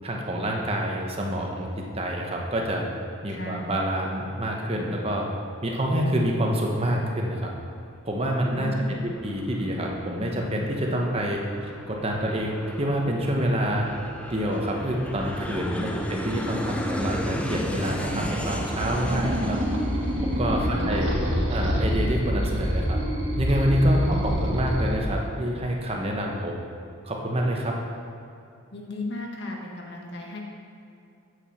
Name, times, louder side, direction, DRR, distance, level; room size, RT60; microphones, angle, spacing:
voice 1, 0.0-2.8 3.2-5.2 5.6-7.5 8.0-13.9 14.3-19.6 20.2-21.1 21.5-23.0 23.4-26.6 27.0-27.7, equal, 30° right, 0 dB, 1.1 m, -27 dB
voice 2, 3.3-3.7 8.5-9.0 15.8-16.0 20.5-21.3 23.9-24.7 28.7-30.4, left 2 dB, 55° left, -1 dB, 1.6 m, -36 dB
Aircraft, 8.0-21.2, equal, 5° left, 0.5 m, -36 dB
sound 1, 17.0-24.9, equal, 60° right, 1.7 m, -27 dB
7.9 x 7.2 x 6.3 m, 2.6 s
head